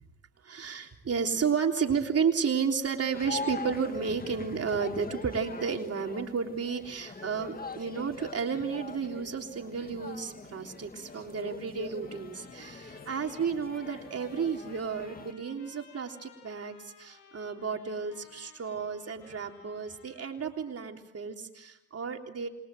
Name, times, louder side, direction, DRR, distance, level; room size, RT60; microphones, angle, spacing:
voice 1, 0.4-22.5, right 6 dB, 35° right, 3 dB, 3.5 m, -32 dB
sound 1, 3.1-15.3, left 4 dB, 20° left, 2.0 m, -43 dB
Trumpet, 12.0-20.6, left 6 dB, 85° left, 6.4 m, -57 dB
28.0 x 22.5 x 7.8 m, 0.98 s
supercardioid pair, 75°, 41 cm